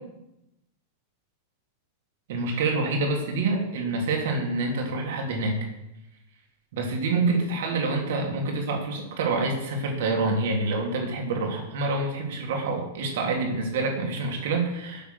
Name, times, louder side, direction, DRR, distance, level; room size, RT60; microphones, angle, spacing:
voice 1, 2.3-5.7 6.7-15.1, right 3 dB, 55° right, 2 dB, 3.0 m, -27 dB
12.0 x 7.3 x 8.0 m, 0.90 s
figure-of-eight pair, 90°, 0 cm